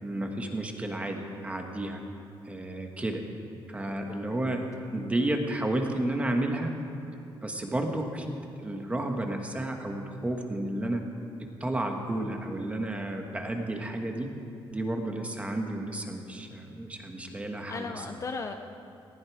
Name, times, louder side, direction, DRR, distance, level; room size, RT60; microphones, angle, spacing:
voice 1, 0.0-2.0 2.5-3.2 3.7-4.6 4.9-6.7 7.4-8.2 8.6-11.0 11.4-14.3 14.7-17.9, right 1 dB, 15° right, 3 dB, 1.4 m, -32 dB
voice 2, 4.1-4.6 17.7-18.5, left 4 dB, 30° left, 6 dB, 0.6 m, -37 dB
18.5 x 15.5 x 4.8 m, 2.6 s
cardioid pair, 165°, 10 cm